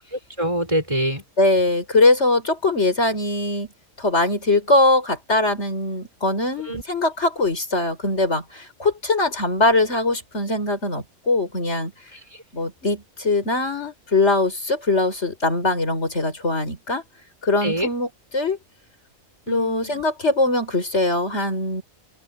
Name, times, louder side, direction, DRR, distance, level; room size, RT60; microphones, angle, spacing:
voice 1, 0.1-1.2 6.7-6.8 12.1-12.4 17.6-17.9 19.5-20.0, right 1 dB, 20° right, 5.0 m, -26 dB
voice 2, 1.4-3.7 4.0-11.9 12.5-17.0 17.4-18.1 18.3-18.6 19.5-21.8, left 2 dB, 55° left, 5.1 m, -21 dB
open air
omnidirectional pair, 1.4 m